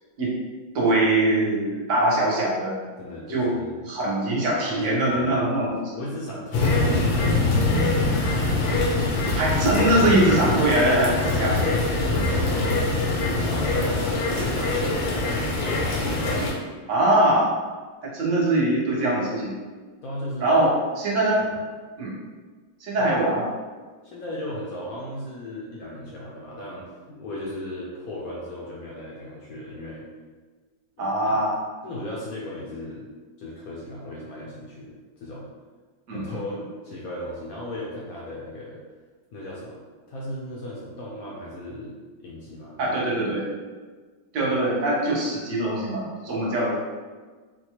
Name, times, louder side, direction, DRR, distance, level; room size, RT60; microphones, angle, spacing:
voice 1, 0.7-2.8 3.3-3.5 3.9-5.9 6.6-6.7 9.3-11.6 12.1-12.2 16.9-17.5 18.0-19.5 20.4-21.5 22.0-22.1 22.8-23.5 31.0-31.5 36.1-36.2 42.8-43.4 44.3-46.8, right 1 dB, 60° right, -4 dB, 0.8 m, -22 dB
voice 2, 3.0-3.9 4.7-5.4 5.9-7.8 11.4-12.8 13.2-15.2 20.0-20.7 21.4-21.6 23.0-23.1 24.0-30.0 31.0-31.4 31.8-33.1 33.4-35.5 36.1-38.8 39.3-39.8 40.1-41.9 42.2-43.0 44.4-44.6, left 1 dB, 70° left, -5 dB, 0.8 m, -36 dB
sound 1, 6.5-16.5, left 2 dB, 85° left, 1.4 m, -23 dB
4.1 x 2.2 x 2.9 m, 1.4 s
omnidirectional pair, 2.1 m